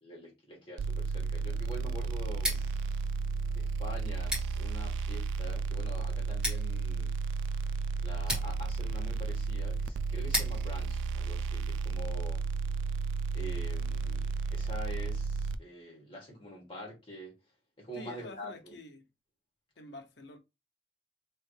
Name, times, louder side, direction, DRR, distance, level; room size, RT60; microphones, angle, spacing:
voice 1, 0.0-2.7 3.5-7.1 8.0-12.4 13.3-17.3 17.8-18.8, equal, 25° left, 1.9 m, -45 dB
sound 1, 0.8-15.5, right 4 dB, 85° right, 0.3 m, -33 dB
Scissors, 2.3-12.1, equal, 5° right, 2.3 m, -41 dB
voice 2, 17.9-19.0 19.8-20.4, left 2 dB, 65° left, 0.8 m, -47 dB
3.5 x 3.4 x 3.2 m
head